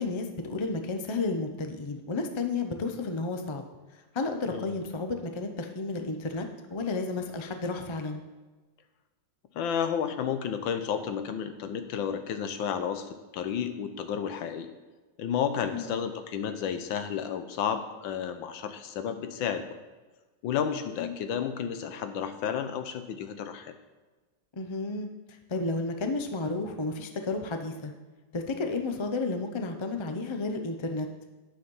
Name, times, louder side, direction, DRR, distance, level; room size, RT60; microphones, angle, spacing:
voice 1, 0.0-3.6 4.1-8.2 15.7-15.9 21.0-21.2 24.6-27.9 28.3-31.1, left 3 dB, 50° left, 6 dB, 0.3 m, -32 dB
voice 2, 9.5-14.7 15.2-19.7 20.4-23.7, left 8 dB, 90° left, 9 dB, 1.6 m, -32 dB
9.5 x 7.2 x 5.5 m, 1.3 s
omnidirectional pair, 2.0 m